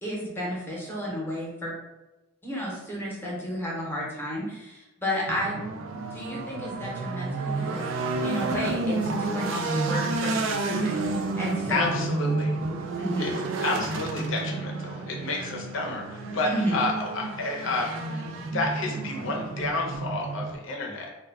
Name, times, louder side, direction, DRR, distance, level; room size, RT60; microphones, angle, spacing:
voice 1, 0.0-1.7 2.4-5.6 6.1-7.9 8.2-11.0 11.4-12.0 13.0-13.3 16.4-16.7, equal, 10° left, -5 dB, 0.7 m, -32 dB
sound 1, 5.3-20.5, right 3 dB, 80° right, 0.4 m, -30 dB
voice 2, 11.7-12.6 13.2-13.3 13.6-21.1, left 2 dB, 80° left, 0 dB, 0.6 m, -30 dB
2.3 x 2.1 x 3.3 m, 0.99 s
head